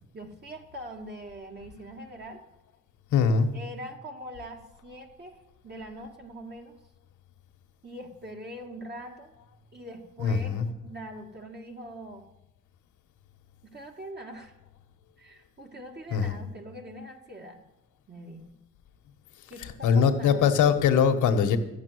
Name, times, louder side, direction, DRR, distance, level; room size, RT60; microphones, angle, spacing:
voice 1, 0.1-2.4 3.5-6.8 7.8-9.3 9.7-12.2 13.6-14.5 15.2-17.6 18.1-18.5 19.5-20.7, right 1 dB, 35° right, 1 dB, 2.0 m, -43 dB
voice 2, 3.1-3.5 10.2-10.7 16.1-16.3 19.8-21.6, left 6 dB, 80° left, 6 dB, 1.5 m, -22 dB
13.5 x 7.5 x 9.5 m, 0.89 s
cardioid pair, 90°, 30 cm